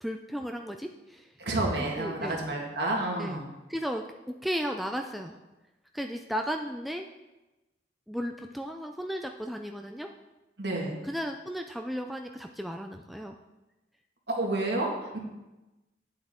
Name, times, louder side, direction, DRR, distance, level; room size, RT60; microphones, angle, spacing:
voice 1, 0.0-1.3 1.8-2.4 3.2-3.4 3.7-5.4 5.9-7.1 8.1-10.1 11.1-13.4, equal, ahead, 3 dB, 0.3 m, -35 dB
voice 2, 1.4-3.4 10.6-10.9 14.3-15.2, right 2 dB, 65° right, -1 dB, 2.0 m, -30 dB
9.4 x 7.7 x 3.7 m, 1.0 s
head